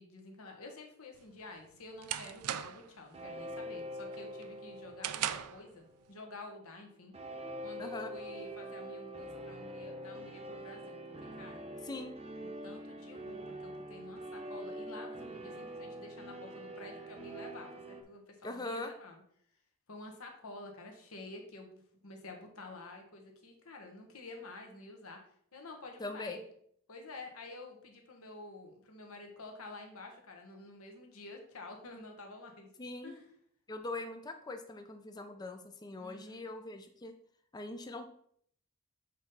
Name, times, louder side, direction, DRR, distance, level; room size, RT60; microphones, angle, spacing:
voice 1, 0.0-7.1 7.6-11.0 11.4-11.6 12.4-19.2 19.9-25.2 25.5-26.4 26.9-32.7 33.0-33.3 36.0-36.4, left 2 dB, 70° left, 3 dB, 1.3 m, -50 dB
sound 1, 1.2-3.0 3.4-3.7 4.1-5.7, right 10 dB, 85° right, 0.4 m, -38 dB
sound 2, 3.1-6.3 7.1-18.0, right 1 dB, 25° right, 0.8 m, -44 dB
voice 2, 7.8-8.1 11.8-12.1 18.4-18.9 26.0-26.4 32.8-33.1 33.7-37.1 37.5-38.0, left 2 dB, 20° left, 6 dB, 0.4 m, -41 dB
7.3 x 4.1 x 3.9 m, 0.65 s
head